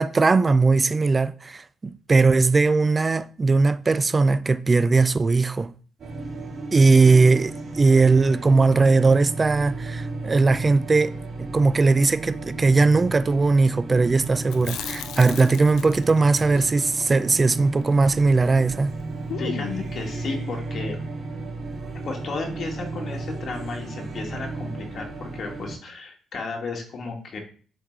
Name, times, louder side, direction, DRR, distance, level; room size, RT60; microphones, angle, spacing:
voice 1, 0.0-5.7 6.7-11.1 11.4-18.9, right 3 dB, 30° right, 0.4 m, -19 dB
sound 1, 6.0-25.7, right 3 dB, 55° right, 2.9 m, -34 dB
Chewing mastication, 14.4-18.6 18.9-19.0 19.3-20.0, left 10 dB, 85° left, 0.4 m, -37 dB
voice 2, 19.4-21.0 22.0-27.4, left 3 dB, 55° left, 1.7 m, -33 dB
7.8 x 3.6 x 3.3 m
cardioid pair, 90°, 0 cm